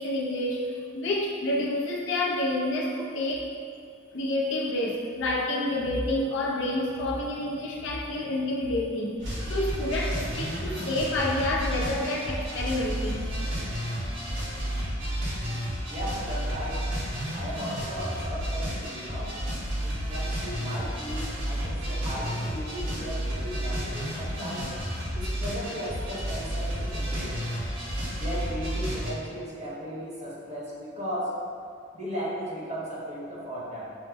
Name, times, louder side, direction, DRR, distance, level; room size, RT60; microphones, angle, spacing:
voice 1, 0.0-3.5 4.1-13.3, left 1 dB, 70° left, -2 dB, 0.6 m, -29 dB
sound 1, 9.2-29.1, equal, 65° right, 1.2 m, -31 dB
voice 2, 15.9-16.9 17.3-19.4 19.8-24.8 25.1-27.4 28.2-31.3 31.9-34.0, equal, 35° right, -7 dB, 1.0 m, -36 dB
5.3 x 2.0 x 3.4 m, 2.3 s
head